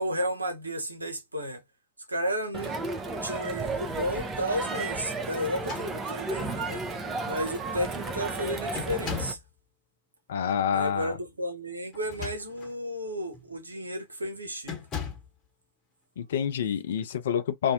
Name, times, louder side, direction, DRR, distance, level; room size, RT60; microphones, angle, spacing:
voice 1, 0.0-1.6 2.1-2.8 3.2-6.8 7.3-9.4 10.7-14.9, equal, 80° right, 0.6 m, -33 dB
Crowd, 2.5-9.3, right 3 dB, 20° right, 0.6 m, -33 dB
sound 1, 5.5-6.4 7.3-7.4 7.7-8.1 8.7-9.5 11.9-12.8 13.3-13.5 14.6-15.4, left 8 dB, 30° left, 0.9 m, -38 dB
voice 2, 10.3-11.2 16.2-17.7, left 8 dB, 60° left, 0.4 m, -28 dB
2.5 x 2.0 x 2.7 m
figure-of-eight pair, 90°, 0 cm